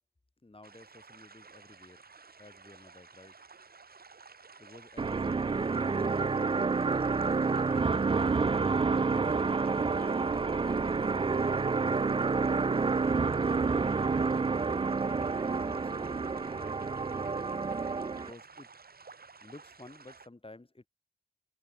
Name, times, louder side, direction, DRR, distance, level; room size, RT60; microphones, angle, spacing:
voice 1, 0.4-2.0 2.4-3.4 4.6-12.5 15.2-16.9 18.1-18.7 19.4-20.9, left 2 dB, 35° left, 6.5 m, -55 dB
sound 1, 0.6-20.3, right 5 dB, 80° right, 3.5 m, -54 dB
sound 2, 5.0-18.3, right 4 dB, 35° right, 0.4 m, -29 dB
cardioid pair, 50°, 16 cm